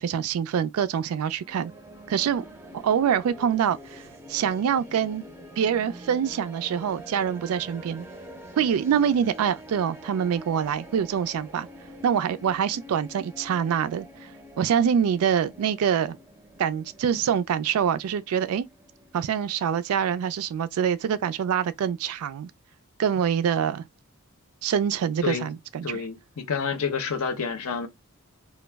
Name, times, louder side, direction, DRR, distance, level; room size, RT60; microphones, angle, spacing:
voice 1, 0.0-1.7 2.1-2.4 2.7-4.0 4.3-5.2 5.6-8.1 8.6-11.7 12.0-14.3 14.6-16.2 16.6-18.7 19.1-22.5 23.0-23.9 24.6-26.0, right 8 dB, 75° right, 0.3 m, -25 dB
sound 1, 1.4-19.6, equal, 10° right, 0.4 m, -46 dB
voice 2, 25.8-27.9, left 6 dB, 70° left, 0.6 m, -29 dB
2.2 x 2.0 x 3.3 m
head